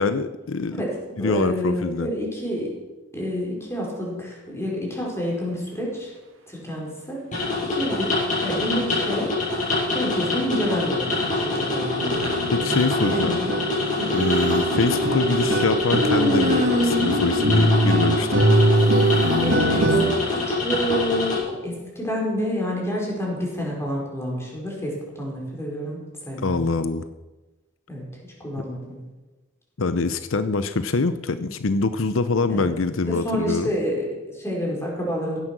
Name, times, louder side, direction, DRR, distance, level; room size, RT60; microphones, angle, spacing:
voice 1, 0.0-0.8 1.2-2.1 12.5-13.4 14.1-18.4 26.4-27.0 28.6-28.7 29.8-33.7, left 3 dB, 85° left, 12 dB, 0.7 m, -24 dB
voice 2, 0.7-2.7 3.1-6.1 6.5-7.2 7.6-8.1 8.4-9.3 9.9-12.2 13.0-13.5 14.0-14.2 19.0-20.0 20.3-26.7 27.9-28.0 28.4-29.0 32.5-32.7 33.0-35.4, equal, 15° left, -2 dB, 5.0 m, -28 dB
sound 1, 7.3-21.4, left 2 dB, 40° left, 6.9 m, -25 dB
sound 2, 10.2-10.3 10.6-10.8 11.1-20.1, right 1 dB, 80° right, 2.3 m, -23 dB
Human voice, 13.8-14.8 15.9-18.7, equal, 40° right, 2.5 m, -27 dB
16.5 x 11.5 x 6.2 m, 1.1 s
head